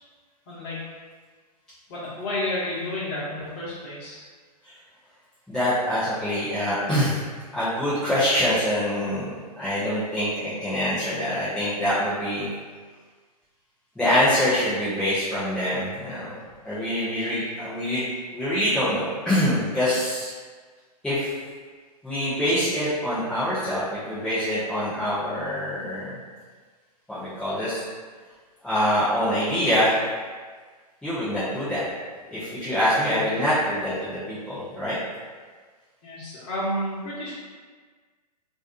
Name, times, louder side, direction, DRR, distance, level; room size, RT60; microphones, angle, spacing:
voice 1, 0.5-0.8 1.9-4.2 33.1-33.2 36.0-37.3, left 1 dB, 35° left, -9 dB, 1.1 m, -31 dB
voice 2, 5.5-7.2 7.5-12.5 14.0-16.4 16.6-20.3 21.0-21.3 22.0-26.1 27.1-27.8 28.6-30.0 31.0-31.8 32.3-35.0, equal, 5° left, -14 dB, 0.5 m, -25 dB
2.5 x 2.2 x 2.4 m, 1.5 s
figure-of-eight pair, 110°, 21 cm